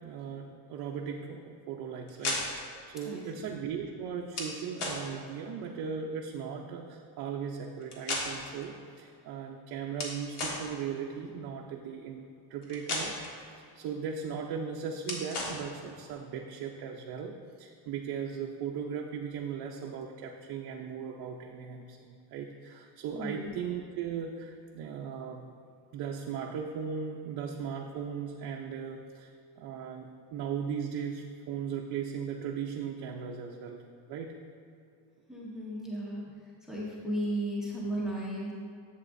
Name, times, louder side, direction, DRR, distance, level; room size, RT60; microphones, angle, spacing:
voice 1, 0.0-13.4 13.7-25.5 25.9-29.3 29.6-33.8 34.1-34.3, right 7 dB, 60° right, 0 dB, 0.6 m, -38 dB
sound 1, 2.1-2.7 4.3-4.5 4.8-5.0 7.8-8.6 10.0-10.6 12.6-13.3 15.1-15.6, left 2 dB, 70° left, 1.7 m, -34 dB
voice 2, 3.1-3.5 23.1-23.5 35.3-36.2 36.6-38.5, right 1 dB, ahead, -5 dB, 0.8 m, -35 dB
11.0 x 7.8 x 2.6 m, 2.4 s
cardioid pair, 170°, 41 cm